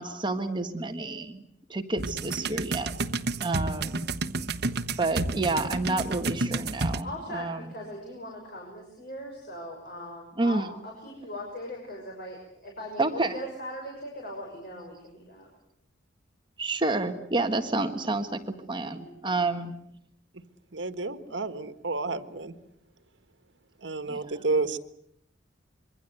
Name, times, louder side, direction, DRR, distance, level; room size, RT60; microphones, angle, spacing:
voice 1, 0.0-1.4 1.7-2.9 3.4-4.0 5.0-7.7 10.4-10.7 13.0-13.4 16.6-18.4 18.7-19.7 24.1-24.3, right 2 dB, 25° right, 7 dB, 1.6 m, -29 dB
sound 1, 2.0-7.0, right 3 dB, 60° right, 1.1 m, -30 dB
voice 2, 7.0-15.5 18.9-19.6, left 1 dB, 55° left, 0 dB, 6.2 m, -40 dB
voice 3, 20.7-22.5 23.8-24.8, right 3 dB, 85° right, 11 dB, 1.5 m, -30 dB
26.0 x 23.5 x 8.0 m, 0.73 s
head